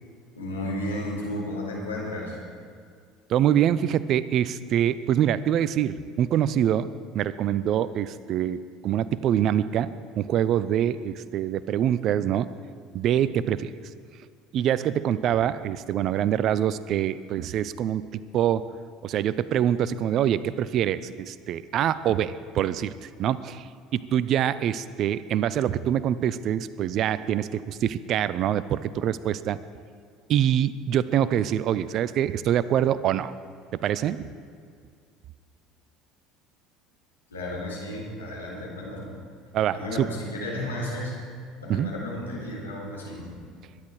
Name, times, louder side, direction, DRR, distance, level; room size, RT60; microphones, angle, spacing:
voice 1, 0.3-2.4 37.3-39.1 39.7-41.1 41.6-43.3, left 1 dB, 90° left, -3 dB, 3.9 m, -33 dB
voice 2, 3.3-6.9 7.1-8.6 8.8-12.5 12.9-13.7 14.5-18.6 19.0-23.7 23.9-29.6 30.3-33.3 33.8-34.3 39.5-40.1 41.7-41.9, right 10 dB, 50° right, 16 dB, 0.6 m, -25 dB
21.5 x 10.5 x 4.8 m, 2.1 s
hypercardioid pair, 65°, 0 cm